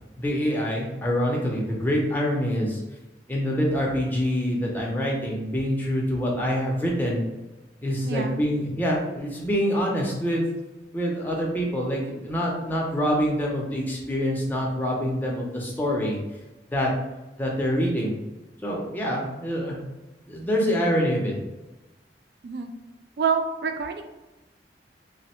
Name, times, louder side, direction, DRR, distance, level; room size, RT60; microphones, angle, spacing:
voice 1, 0.2-2.8 3.3-7.2 7.8-10.4 10.9-16.2 16.7-16.9 17.4-18.2 18.6-19.8 20.3-21.3, equal, 10° left, -2 dB, 0.6 m, -25 dB
voice 2, 8.0-8.4 22.4-22.7 23.2-24.0, right 5 dB, 65° right, 6 dB, 0.3 m, -27 dB
3.4 x 2.2 x 4.2 m, 1.1 s
head